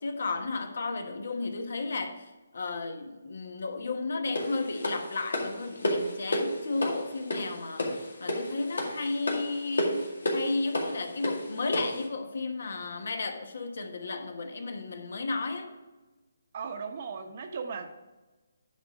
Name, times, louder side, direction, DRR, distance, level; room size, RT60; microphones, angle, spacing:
voice 1, 0.0-15.7, left 3 dB, 70° left, 6 dB, 1.2 m, -33 dB
sound 1, 4.4-12.0, left 1 dB, 85° left, 2.1 m, -32 dB
voice 2, 16.5-17.9, right 5 dB, 45° right, 6 dB, 1.0 m, -37 dB
9.8 x 4.3 x 4.9 m, 1.2 s
hypercardioid pair, 155°, 0 cm